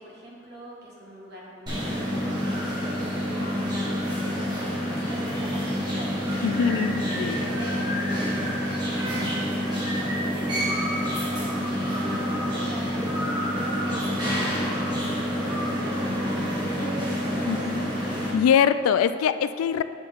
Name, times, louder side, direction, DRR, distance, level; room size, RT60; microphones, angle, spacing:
voice 1, 0.0-4.6 4.9-13.1 13.4-17.7, equal, 50° right, -4 dB, 1.5 m, -43 dB
sound 1, 1.7-18.3, equal, 20° right, 1.4 m, -27 dB
voice 2, 6.4-7.4 17.5-17.9 18.3-19.8, left 7 dB, 90° left, 15 dB, 0.3 m, -23 dB
8.2 x 6.0 x 3.6 m, 2.3 s
head